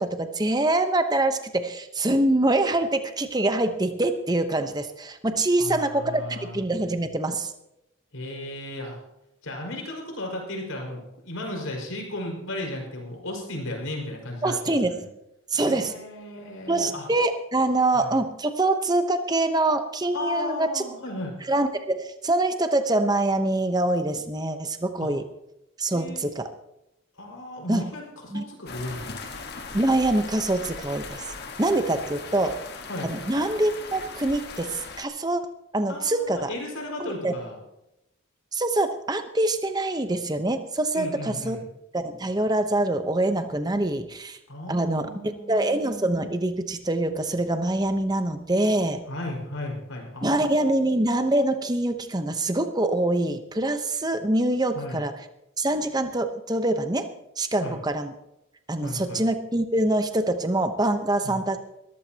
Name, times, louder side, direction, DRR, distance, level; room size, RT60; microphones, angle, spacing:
voice 1, 0.0-7.5 14.4-15.0 15.5-15.9 16.7-20.8 21.5-25.2 25.8-26.5 27.7-27.9 28.3-28.4 29.7-31.2 31.6-32.6 33.0-35.4 35.7-36.5 37.0-37.3 38.5-41.6 41.9-44.4 44.7-49.0 50.2-55.1 55.6-57.0 57.4-58.1 58.7-61.6, right 2 dB, 20° right, 8 dB, 0.9 m, -25 dB
voice 2, 5.6-6.6 8.1-9.0 9.4-15.0 15.5-17.1 17.9-18.1 20.1-21.4 25.0-25.1 25.9-26.4 27.2-29.2 32.9-33.1 35.9-37.6 40.9-41.7 44.5-45.8 49.1-50.5 50.8-50.9 54.7-55.0 57.6-57.8 58.8-59.2 61.2-61.4, left 1 dB, 85° left, 1 dB, 5.2 m, -35 dB
sound 1, 28.7-35.0, left 4 dB, 50° left, 1.5 m, -39 dB
20.5 x 14.0 x 2.9 m, 0.87 s
head